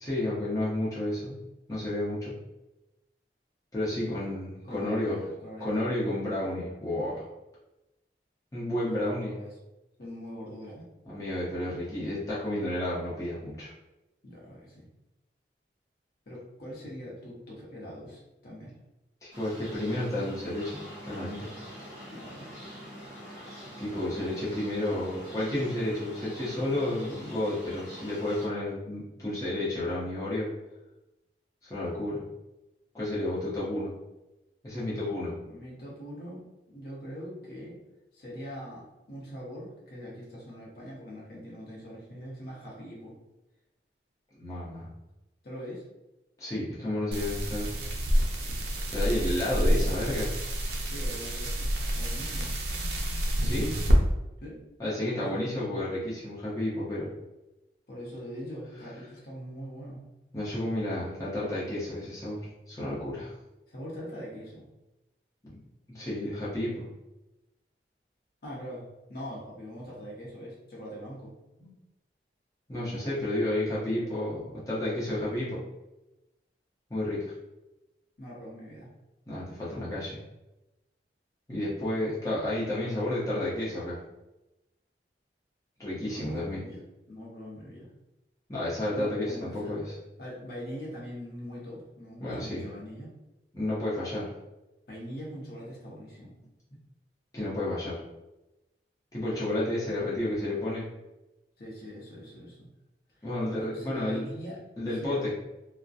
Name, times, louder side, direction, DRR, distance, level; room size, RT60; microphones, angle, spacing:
voice 1, 0.0-1.4 1.7-2.3 3.7-5.2 5.6-7.3 8.5-9.3 11.1-13.7 19.2-21.5 23.8-30.5 31.7-32.2 32.9-33.9 34.6-35.3 44.4-44.9 46.4-47.7 48.9-50.3 53.4-53.7 54.8-57.1 60.3-63.3 65.5-65.6 65.9-66.9 71.6-71.7 72.7-75.6 76.9-77.3 79.3-80.2 81.5-84.0 85.8-86.6 88.5-89.9 92.2-92.6 93.5-94.3 97.3-98.0 99.1-100.9 103.2-104.2 104.8-105.3, left 1 dB, 20° left, -9 dB, 0.6 m, -31 dB
voice 2, 4.6-5.7 8.7-9.5 10.0-10.8 14.2-14.9 16.3-18.7 22.1-22.5 35.5-37.8 38.1-43.1 45.4-45.8 50.9-52.5 54.4-54.6 54.9-55.4 57.9-60.0 63.7-64.6 68.4-71.3 78.2-78.9 86.0-86.8 87.1-87.9 89.0-89.8 90.2-93.1 94.9-96.3 101.6-102.7 103.2-104.6 105.0-105.3, equal, 55° left, -4 dB, 0.7 m, -42 dB
sound 1, 19.3-28.5, equal, 45° right, 0.9 m, -45 dB
sound 2, 47.1-54.0, equal, 65° right, 0.4 m, -28 dB
2.6 x 2.1 x 2.4 m, 0.97 s
head